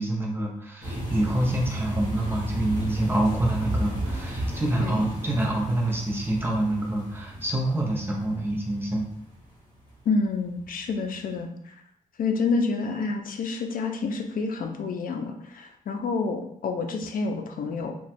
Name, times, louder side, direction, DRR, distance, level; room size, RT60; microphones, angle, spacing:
voice 1, 0.0-9.0, right 1 dB, 15° right, -1 dB, 0.7 m, -26 dB
sound 1, 0.8-9.9 10.4-10.6 10.9-11.0, right 1 dB, 30° left, 1.3 m, -33 dB
voice 2, 10.1-11.8 12.2-17.9, left 4 dB, 75° left, 4 dB, 0.5 m, -28 dB
3.0 x 2.2 x 4.1 m, 0.69 s
wide cardioid pair, 160°, 14 cm